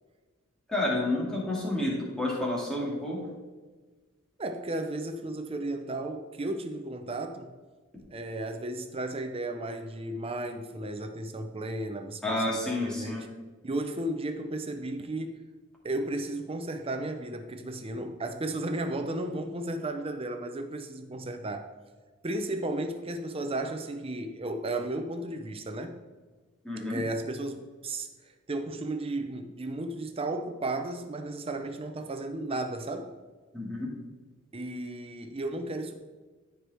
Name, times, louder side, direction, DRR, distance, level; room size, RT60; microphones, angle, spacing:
voice 1, 0.7-3.2 12.2-13.2 26.6-27.0 33.5-33.9, left 1 dB, 5° left, -5 dB, 2.1 m, -30 dB
voice 2, 4.4-7.5 8.1-13.2 13.6-15.4 15.8-21.7 22.2-26.0 26.9-33.1 34.5-36.0, right 2 dB, 25° right, 6 dB, 0.6 m, -34 dB
14.0 x 4.6 x 3.4 m, 1.3 s
head